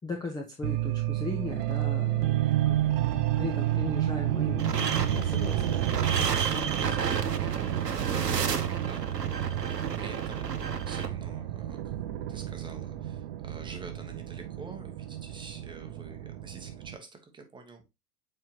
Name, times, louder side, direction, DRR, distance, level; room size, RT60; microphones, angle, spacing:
voice 1, 0.0-2.9 3.4-7.2, left 2 dB, 10° left, 0.7 m, -38 dB
sound 1, 0.6-17.0, right 12 dB, 40° right, 0.6 m, -30 dB
sound 2, 4.6-11.1, right 6 dB, 85° right, 0.9 m, -32 dB
voice 2, 8.0-11.9 12.3-17.8, right 4 dB, 10° right, 1.1 m, -48 dB
7.1 x 4.8 x 2.8 m
figure-of-eight pair, 100°, 47 cm